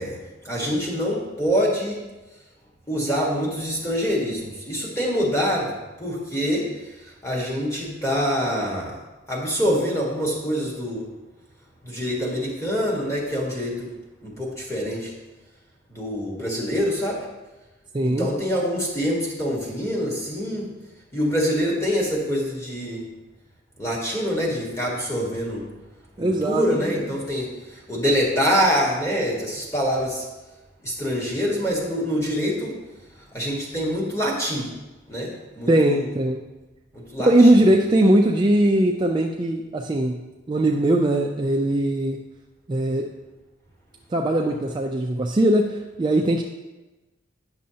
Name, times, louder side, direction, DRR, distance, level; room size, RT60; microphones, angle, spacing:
voice 1, 0.0-2.0 2.9-6.7 7.0-9.0 9.3-11.1 11.8-13.9 14.2-15.1 15.9-17.2 18.0-20.7 21.1-23.1 23.8-25.7 26.2-30.3 30.8-32.8 33.3-34.7 35.1-36.1 36.9-37.3, equal, 15° left, -3 dB, 1.5 m, -25 dB
voice 2, 17.9-18.3 26.2-27.0 35.7-36.4 37.2-40.2 40.5-42.2 42.7-43.1 44.1-46.4, right 1 dB, 25° right, 1 dB, 0.3 m, -20 dB
9.6 x 6.3 x 2.8 m, 1.1 s
head